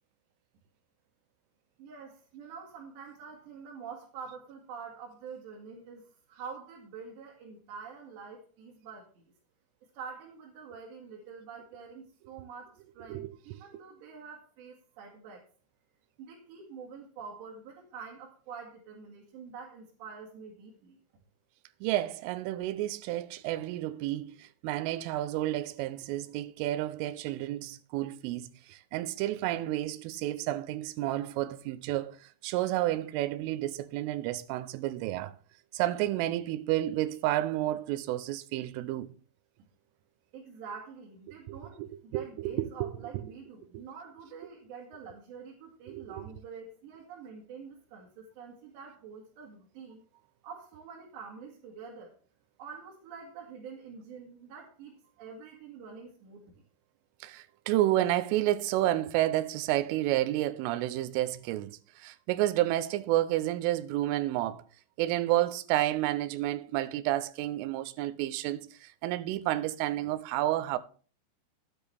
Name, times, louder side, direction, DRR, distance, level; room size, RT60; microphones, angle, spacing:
voice 1, 1.8-6.0 6.3-9.2 9.9-15.4 16.2-21.0 40.3-50.0 50.4-52.1 52.6-56.6, right 6 dB, 60° right, 4.2 m, -46 dB
voice 2, 21.8-35.3 35.7-39.1 41.5-41.9 42.1-42.9 45.9-46.2 57.2-64.6 65.0-70.8, right 14 dB, 80° right, 3.2 m, -30 dB
12.0 x 9.9 x 3.5 m
omnidirectional pair, 5.9 m